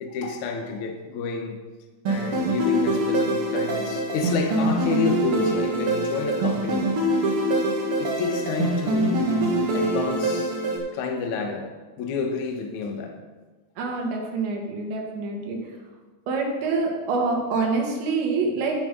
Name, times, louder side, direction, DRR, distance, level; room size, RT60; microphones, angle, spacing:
voice 1, 0.0-1.6 2.0-7.0 8.0-10.6 10.9-13.2, left 5 dB, 75° left, 3 dB, 1.8 m, -29 dB
sound 1, 2.0-10.8, right 1 dB, 50° right, 1.7 m, -24 dB
voice 2, 13.8-15.6 16.3-18.8, right 4 dB, 70° right, 1 dB, 3.9 m, -26 dB
10.5 x 9.2 x 5.3 m, 1.3 s
omnidirectional pair, 5.3 m